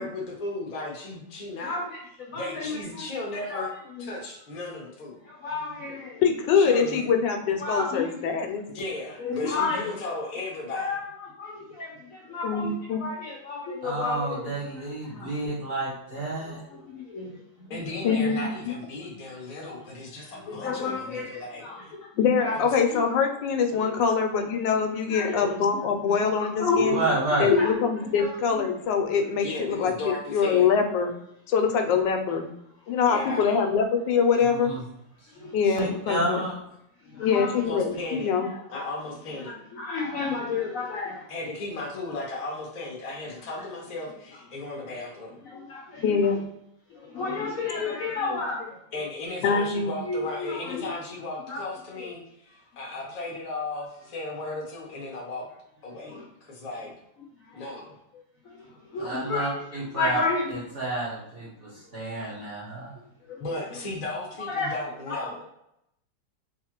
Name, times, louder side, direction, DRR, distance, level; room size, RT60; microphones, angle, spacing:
voice 1, 0.0-1.8 2.3-3.7 4.0-5.2 6.6-7.1 8.7-10.9 17.7-21.9 22.5-22.7 29.4-30.7 33.1-33.6 37.6-38.3 38.7-39.5 41.3-45.4 48.9-55.5 55.8-56.2 56.5-56.9 57.5-57.9 63.4-65.4, left 2 dB, 40° left, -2 dB, 0.6 m, -35 dB
voice 2, 2.2-3.0 3.3-3.7 4.0-4.1 5.3-6.2 7.6-8.2 9.2-10.2 10.7-11.1 11.4-14.5 14.7-15.3 16.3-18.1 20.4-21.8 22.3-22.6 22.9-23.0 23.7-24.0 25.1-25.8 26.3-27.0 27.4-27.8 28.2-28.3 28.5-28.7 35.3-35.6 37.0-37.6 38.4-38.6 39.5-41.2 45.4-46.4 46.9-48.7 50.0-50.9 51.5-51.6 52.0-52.1 56.0-56.3 57.5-57.6 58.4-60.6 63.3-63.4 64.4-64.7 65.1-65.3, left 4 dB, 65° left, -2 dB, 0.9 m, -32 dB
voice 3, 6.2-8.6 12.4-13.0 18.0-18.8 22.2-27.0 27.4-31.2 31.5-32.5 32.9-34.7 35.5-36.4 37.2-37.9 38.2-38.5 46.0-46.4 49.4-49.9, left 6 dB, 85° left, 5 dB, 1.3 m, -24 dB
voice 4, 13.8-16.6 26.8-27.5 34.4-34.8 35.6-36.5 59.0-60.2 60.5-63.0, right 2 dB, 40° right, -7 dB, 0.9 m, -30 dB
3.9 x 2.8 x 2.9 m, 0.80 s
omnidirectional pair, 1.9 m